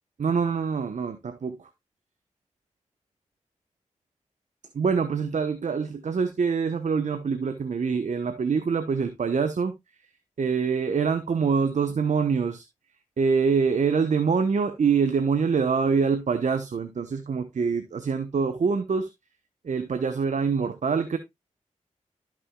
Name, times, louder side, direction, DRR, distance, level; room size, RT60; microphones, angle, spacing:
voice 1, 0.2-1.6 4.7-9.7 10.4-12.6 13.2-19.1 19.6-21.2, right 5 dB, 65° right, 1.0 m, -25 dB
13.0 x 6.1 x 2.3 m
cardioid pair, 45°, 13 cm